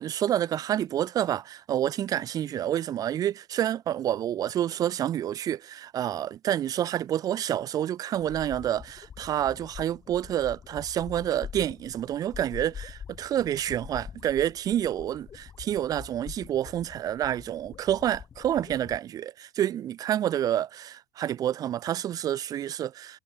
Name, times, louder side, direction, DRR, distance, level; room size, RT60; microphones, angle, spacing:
voice 1, 0.0-23.2, right 11 dB, 35° right, 0.5 m, -28 dB
sound 1, 8.1-19.0, left 7 dB, 30° left, 3.0 m, -44 dB
hypercardioid pair, 90°, 11 cm